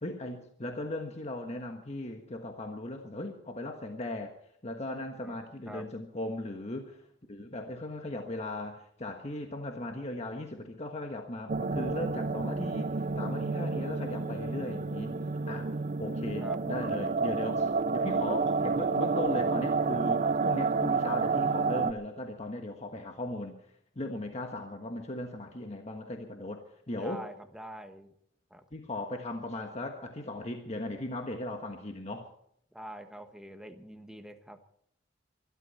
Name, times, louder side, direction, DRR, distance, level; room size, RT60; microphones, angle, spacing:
voice 1, 0.0-4.3 4.6-7.0 7.3-15.2 15.5-15.7 16.0-23.6 23.9-27.3 28.7-32.3, left 1 dB, 35° left, 4 dB, 1.4 m, -38 dB
voice 2, 5.2-5.9 16.4-16.6 27.0-28.1 28.5-28.6 32.7-34.6, right 1 dB, 5° right, 6 dB, 1.3 m, -45 dB
sound 1, 11.5-21.9, right 4 dB, 40° right, 0.6 m, -30 dB
24.0 x 12.5 x 4.3 m, 0.70 s
head